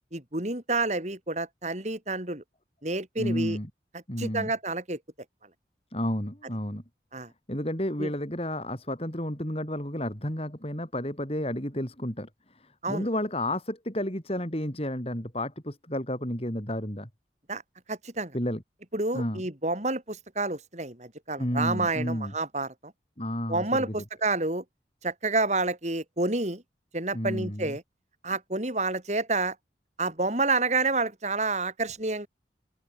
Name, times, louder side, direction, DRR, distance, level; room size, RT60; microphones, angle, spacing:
voice 1, 0.1-2.4 2.8-3.6 4.2-5.0 7.1-7.3 8.0-8.1 12.8-13.1 17.5-17.6 17.9-18.3 18.9-22.9 23.5-24.6 25.0-26.6 26.9-27.8 28.2-29.6 30.0-32.3, right 3 dB, 40° right, 3.6 m, -29 dB
voice 2, 3.2-3.7 4.1-4.5 5.9-6.8 7.5-17.1 18.3-18.6 19.1-19.4 21.4-22.3 23.2-23.9 27.1-27.8, left 1 dB, 35° left, 4.9 m, -31 dB
open air
head